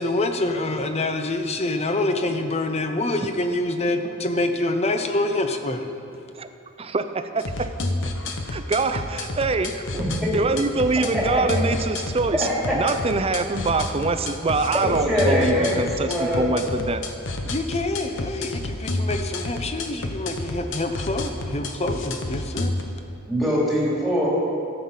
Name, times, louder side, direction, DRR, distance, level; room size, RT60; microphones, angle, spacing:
voice 1, 0.0-5.9 17.5-22.7, left 2 dB, 30° left, 6 dB, 0.7 m, -26 dB
voice 2, 6.8-7.7 8.5-17.0, right 3 dB, 30° right, 9 dB, 0.5 m, -24 dB
sound 1, 7.4-22.8, left 2 dB, 60° left, 0.9 m, -30 dB
voice 3, 10.0-10.3 11.1-11.2 12.3-12.7 15.1-16.5 23.3-24.3, equal, ahead, -6 dB, 2.9 m, -23 dB
13.0 x 7.9 x 5.6 m, 2.6 s
head